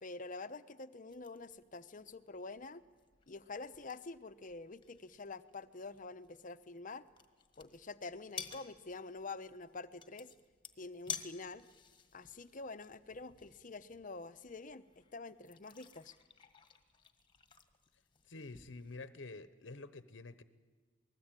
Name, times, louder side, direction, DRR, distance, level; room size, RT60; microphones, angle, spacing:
voice 1, 0.0-2.8 3.3-7.1 7.6-10.3 10.8-11.7 12.1-16.1, left 3 dB, 40° left, 12 dB, 0.9 m, -47 dB
sound 1, 1.1-19.1, left 6 dB, 25° left, 1.6 m, -53 dB
voice 2, 18.3-20.4, left 3 dB, 65° left, 13 dB, 1.0 m, -48 dB
27.5 x 19.5 x 9.0 m, 1.5 s
head